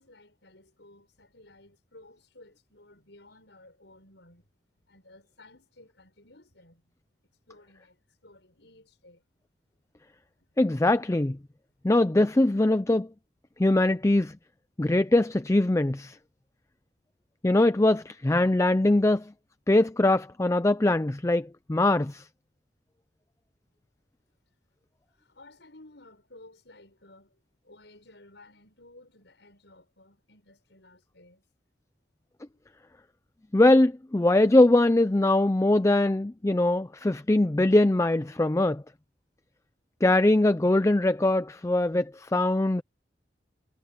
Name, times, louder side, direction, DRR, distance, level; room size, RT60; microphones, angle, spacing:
voice 1, 0.0-4.4 4.9-6.9 7.5-9.2 9.9-10.0 10.4-10.5 11.8-11.9 25.1-27.4 27.6-31.4 32.5-32.6, left 2 dB, 75° left, 6.8 m, -55 dB
voice 2, 10.6-11.4 11.8-13.1 13.6-14.4 14.8-16.2 17.4-19.3 19.7-22.3 33.5-38.8 40.0-42.8, left 1 dB, 15° left, 0.4 m, -22 dB
head